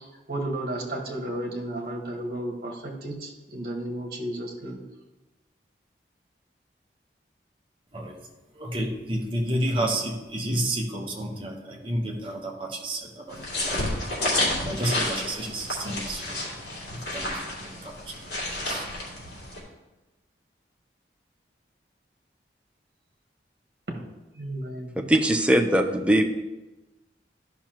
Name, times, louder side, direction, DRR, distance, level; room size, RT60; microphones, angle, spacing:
voice 1, 0.0-4.8 23.9-24.0 24.3-25.0, right 1 dB, 55° right, 0 dB, 1.5 m, -33 dB
voice 2, 7.9-8.3 8.5-13.8 14.2-16.5 16.9-18.8, right 1 dB, 30° right, 1 dB, 1.0 m, -31 dB
sound 1, 13.3-19.6, left 1 dB, 75° left, 2.7 m, -30 dB
voice 3, 25.0-26.3, right 1 dB, 5° right, 3 dB, 0.5 m, -21 dB
12.5 x 5.7 x 3.0 m, 1.1 s
head